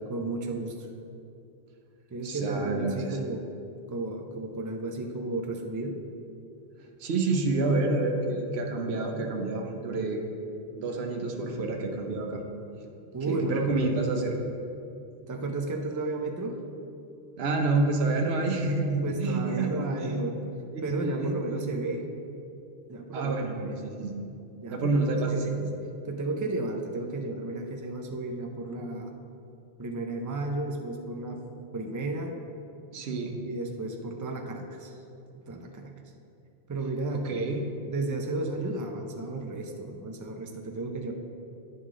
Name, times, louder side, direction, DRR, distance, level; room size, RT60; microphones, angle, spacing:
voice 1, 0.1-0.8 2.1-3.5 3.9-6.0 13.1-13.7 15.3-16.6 19.0-20.4 20.8-22.1 22.9-23.8 24.6-25.6 26.0-29.3 29.8-31.4 31.7-32.3 33.5-35.0 35.5-36.0 36.7-37.2 37.9-41.1, right 2 dB, 30° right, 3 dB, 0.4 m, -33 dB
voice 2, 2.2-3.2 7.0-10.2 10.8-12.4 13.3-14.4 17.4-20.2 20.7-21.8 23.1-24.2 24.7-25.5 32.9-33.4 37.1-37.6, right 3 dB, 65° right, 2 dB, 1.0 m, -28 dB
9.3 x 5.4 x 3.7 m, 2.7 s
omnidirectional pair, 1.2 m